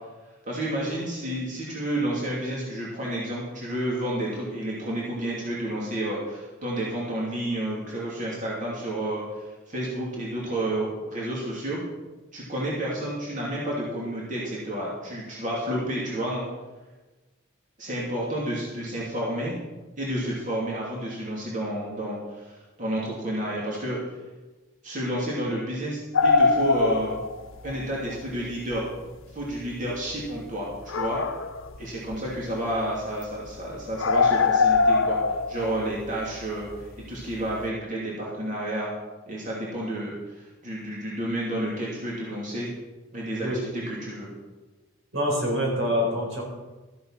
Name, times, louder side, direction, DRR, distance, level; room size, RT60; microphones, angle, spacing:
voice 1, 0.4-11.8 12.3-16.4 17.8-19.5 20.0-24.0 24.8-27.1 27.6-28.8 29.3-31.2 31.8-35.2 35.5-38.9 39.3-42.7 43.1-44.3, right 1 dB, 40° right, -5 dB, 2.8 m, -30 dB
sound 1, 26.1-27.8 28.1-28.2 28.7-28.8 29.5-29.6 30.7-31.8 32.1-32.4 32.7-32.8 33.2-33.3 33.5-33.6 34.0-37.0 37.3-37.6, left 4 dB, 85° left, 0.8 m, -22 dB
voice 2, 45.1-46.4, equal, 80° right, -2 dB, 4.4 m, -25 dB
13.5 x 7.8 x 5.8 m, 1.2 s
head